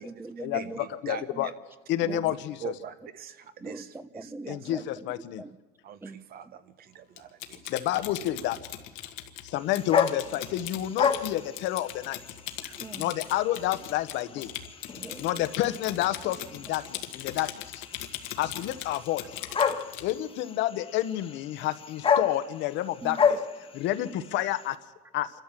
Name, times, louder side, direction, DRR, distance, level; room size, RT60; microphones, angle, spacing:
voice 1, 0.0-1.5 2.0-2.4 3.6-5.0 5.4-5.6 6.0-6.2 12.6-13.1 15.0-15.5 16.2-16.6 18.0-18.1 23.0-23.2 24.0-24.2, right 3 dB, 10° right, 14 dB, 0.8 m, -42 dB
voice 2, 0.5-1.5 2.1-2.3 2.6-3.9 4.2-4.7 5.8-7.7, right 8 dB, 50° right, 12 dB, 1.3 m, -42 dB
voice 3, 1.0-1.5 1.9-2.6 4.5-5.4 7.7-8.6 9.4-12.2 13.0-14.5 15.2-17.8 18.4-19.2 20.0-23.4 23.7-24.8 25.1-25.3, left 14 dB, 70° left, 11 dB, 1.2 m, -29 dB
Typing, 7.2-20.2, left 13 dB, 90° left, 1.7 m, -40 dB
sound 1, 9.6-24.7, left 6 dB, 30° left, 1.5 m, -32 dB
27.0 x 12.5 x 7.6 m, 1.2 s
cardioid pair, 135°, 19 cm